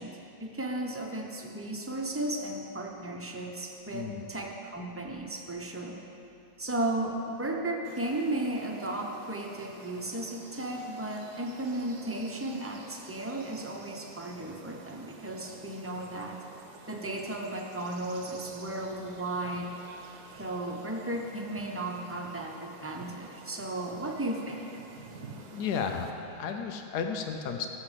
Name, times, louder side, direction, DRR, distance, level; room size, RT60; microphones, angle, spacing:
voice 1, 0.0-6.0 6.6-16.4 16.9-19.7 20.4-24.6, right 1 dB, 10° right, 0 dB, 0.7 m, -35 dB
voice 2, 3.9-4.2 25.5-27.7, left 6 dB, 80° left, 5 dB, 1.4 m, -33 dB
sound 1, 7.8-26.1, right 3 dB, 75° right, 1.5 m, -50 dB
13.5 x 6.4 x 7.5 m, 2.9 s
omnidirectional pair, 1.7 m